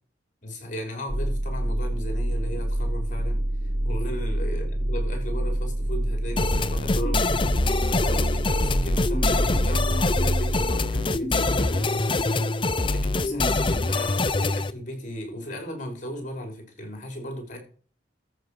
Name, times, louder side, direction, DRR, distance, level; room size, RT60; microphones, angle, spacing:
voice 1, 0.4-7.2 7.9-17.6, equal, 45° left, 4 dB, 5.3 m, -36 dB
sound 1, 1.1-10.7, right 1 dB, 45° right, 1.3 m, -27 dB
sound 2, 6.4-14.7, left 2 dB, 30° left, 0.6 m, -24 dB
13.5 x 5.9 x 6.8 m, 0.41 s
head